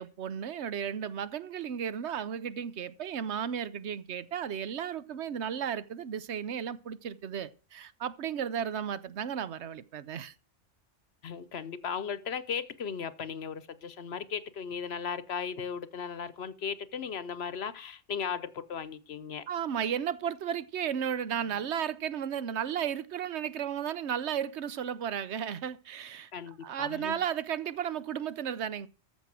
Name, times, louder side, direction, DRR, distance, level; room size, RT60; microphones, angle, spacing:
voice 1, 0.0-10.3 19.5-26.3 26.6-28.9, right 8 dB, 65° right, 1.1 m, -34 dB
voice 2, 11.2-19.4 26.3-27.2, left 6 dB, 60° left, 1.0 m, -36 dB
14.0 x 6.3 x 7.5 m
omnidirectional pair, 1.3 m